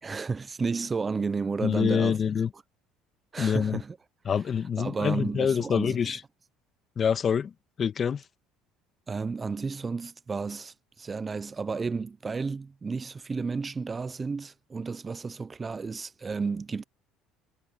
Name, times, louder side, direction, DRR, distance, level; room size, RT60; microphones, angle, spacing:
voice 1, 0.0-2.2 3.3-4.0 4.8-6.2 9.1-16.8, right 4 dB, 25° right, 0.7 m, -32 dB
voice 2, 1.6-2.5 3.4-3.8 4.2-6.2 6.9-7.5 7.8-8.2, left 7 dB, 40° left, 1.8 m, -26 dB
supercardioid pair, 80°, 0 cm